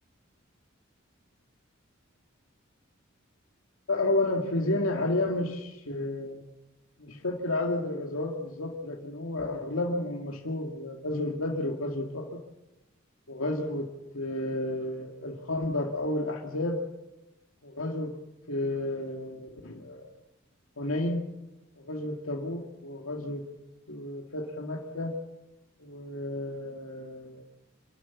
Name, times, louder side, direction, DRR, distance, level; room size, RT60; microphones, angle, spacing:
voice 1, 3.9-6.4 7.0-12.4 13.3-16.8 17.6-18.1 18.5-20.1 20.8-21.3 21.8-23.5 23.9-25.1 25.8-27.4, left 2 dB, 80° left, 0 dB, 2.3 m, -31 dB
27.5 x 13.0 x 8.6 m, 0.95 s
head